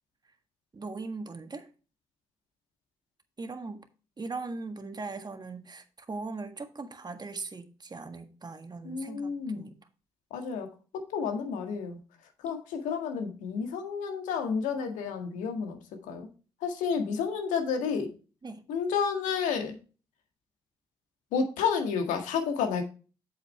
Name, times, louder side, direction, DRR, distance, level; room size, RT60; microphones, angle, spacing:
voice 1, 0.7-1.7 3.4-3.9 4.2-9.7 18.4-18.6, right 3 dB, 30° right, 1.6 m, -39 dB
voice 2, 8.8-9.7 10.3-10.7 10.9-12.0 12.4-15.8 16.1-16.3 16.6-18.1 18.7-19.8 21.3-22.8, left 6 dB, 70° left, 1.8 m, -30 dB
8.2 x 7.9 x 3.3 m
hypercardioid pair, 45°, 13 cm